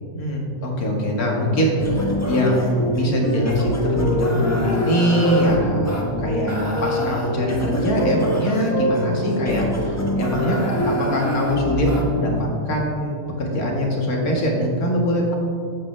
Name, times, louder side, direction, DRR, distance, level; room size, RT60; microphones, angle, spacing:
voice 1, 0.1-6.5 6.8-10.6 10.9-15.3, equal, 60° left, -1 dB, 2.2 m, -22 dB
sound 1, 1.8-12.4, left 1 dB, 10° left, 1.2 m, -24 dB
13.5 x 9.2 x 3.3 m, 2.4 s
omnidirectional pair, 1.8 m